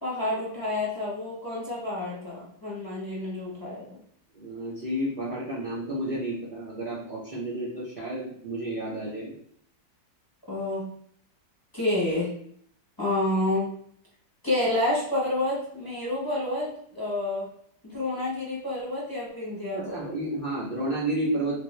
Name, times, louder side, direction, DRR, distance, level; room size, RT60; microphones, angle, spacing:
voice 1, 0.0-3.9 10.5-10.9 11.7-12.3 13.0-13.7 14.4-17.5 17.8-20.1, left 1 dB, 15° left, -7 dB, 0.8 m, -29 dB
voice 2, 4.3-9.3 19.7-21.6, right 1 dB, 75° right, -7 dB, 0.4 m, -31 dB
3.5 x 2.6 x 3.1 m, 0.66 s
omnidirectional pair, 1.9 m